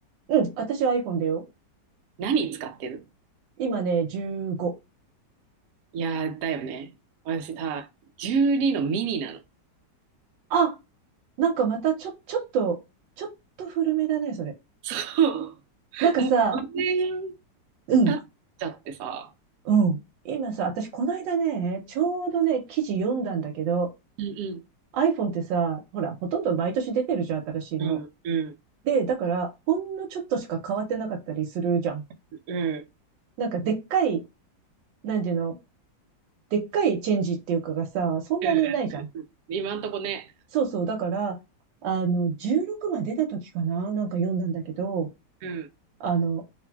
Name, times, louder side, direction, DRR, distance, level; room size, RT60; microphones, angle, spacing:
voice 1, 0.3-1.4 3.6-4.7 10.5-10.8 11.4-12.8 13.2-13.3 13.6-14.5 16.0-16.6 17.9-18.1 19.7-20.0 20.2-23.9 24.9-28.0 28.9-32.0 33.4-34.2 35.0-35.6 36.5-39.1 40.5-41.4 41.8-45.1 46.0-46.4, right 6 dB, 90° right, 1.3 m, -26 dB
voice 2, 2.2-3.0 5.9-6.9 7.2-7.9 8.2-9.4 14.8-15.5 15.9-17.4 18.1-18.2 18.6-19.3 24.2-24.6 27.8-28.5 32.5-32.8 38.4-39.0 39.5-40.3 45.4-45.7, right 5 dB, 70° right, 0.9 m, -28 dB
3.0 x 2.5 x 2.2 m
omnidirectional pair, 1.9 m